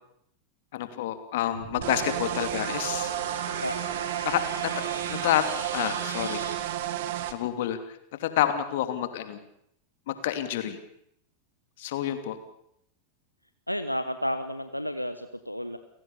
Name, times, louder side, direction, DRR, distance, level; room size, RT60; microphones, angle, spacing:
voice 1, 0.7-3.1 4.2-4.7 5.1-5.4 5.7-6.4 7.3-7.8 8.2-9.4 10.1-10.8 11.8-12.4, left 12 dB, 55° left, 9 dB, 2.8 m, -28 dB
sound 1, 1.5-6.5, right 3 dB, 70° right, 4.5 m, -38 dB
sound 2, 1.8-7.3, right 12 dB, 55° right, 1.8 m, -32 dB
voice 2, 13.7-15.8, equal, 90° left, 9 dB, 1.1 m, -31 dB
30.0 x 17.5 x 7.0 m, 0.74 s
figure-of-eight pair, 90°, 0 cm